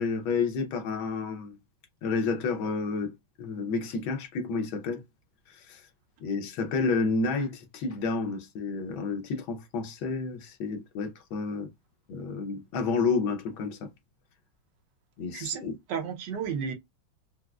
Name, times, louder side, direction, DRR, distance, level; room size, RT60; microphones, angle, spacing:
voice 1, 0.0-1.6 2.0-5.0 5.5-5.9 6.2-11.7 12.1-13.9 15.2-15.8, left 4 dB, 90° left, 1.6 m, -30 dB
voice 2, 15.9-16.7, right 7 dB, 70° right, 1.2 m, -32 dB
4.7 x 2.0 x 2.3 m
omnidirectional pair, 2.1 m